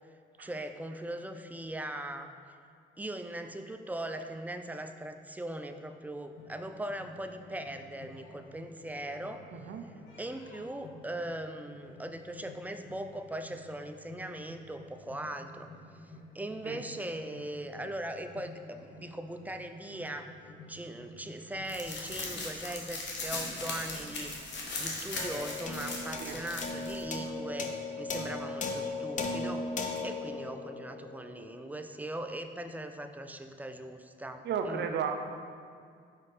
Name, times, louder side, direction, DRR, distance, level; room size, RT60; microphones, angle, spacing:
voice 1, 0.4-2.3 3.0-9.5 10.2-15.7 16.0-20.3 20.7-24.3 24.8-29.7 30.0-34.9, right 1 dB, 10° right, 7 dB, 0.4 m, -40 dB
sound 1, 6.4-22.3, left 1 dB, 80° left, 1.1 m, -52 dB
voice 2, 9.5-9.9 16.7-16.8 26.2-26.4 34.4-35.1, right 7 dB, 60° right, 5 dB, 0.6 m, -34 dB
sound 2, 21.7-27.0, left 3 dB, 65° left, 1.2 m, -38 dB
sound 3, 25.2-31.8, left 3 dB, 40° left, 0.6 m, -37 dB
5.3 x 5.2 x 4.1 m, 2.2 s
cardioid pair, 90°, 20 cm